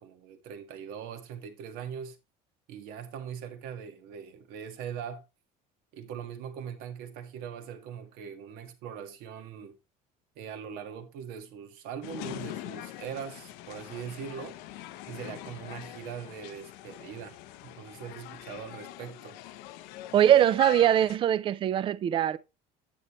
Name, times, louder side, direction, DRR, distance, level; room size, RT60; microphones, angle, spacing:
voice 1, 0.0-2.2 2.7-5.2 5.9-9.8 10.4-14.6 15.1-17.4 17.6-19.4, right 8 dB, 70° right, 1.8 m, -41 dB
sound 1, 12.0-21.2, left 14 dB, 80° left, 0.7 m, -43 dB
voice 2, 20.1-22.4, right 11 dB, 35° right, 0.5 m, -22 dB
9.2 x 8.8 x 3.1 m
cardioid pair, 160°, 16 cm